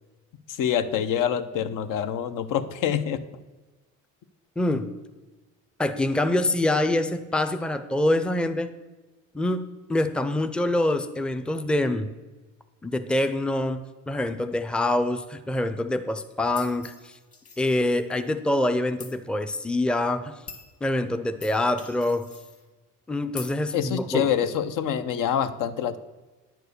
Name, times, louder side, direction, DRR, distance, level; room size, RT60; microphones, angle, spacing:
voice 1, 0.5-3.2 23.7-26.0, left 9 dB, 65° left, 11 dB, 0.7 m, -26 dB
voice 2, 4.6-4.9 5.8-8.7 9.3-12.1 12.8-17.1 17.6-20.3 20.8-22.3 23.1-24.3, left 1 dB, 5° left, 10 dB, 0.5 m, -25 dB
sound 1, 16.5-18.2 19.0-19.1 19.9-20.0 20.5-20.7 21.4-22.6 23.4-23.5, left 5 dB, 40° left, 1.6 m, -44 dB
9.4 x 4.6 x 6.6 m, 1.2 s
cardioid pair, 90°, 34 cm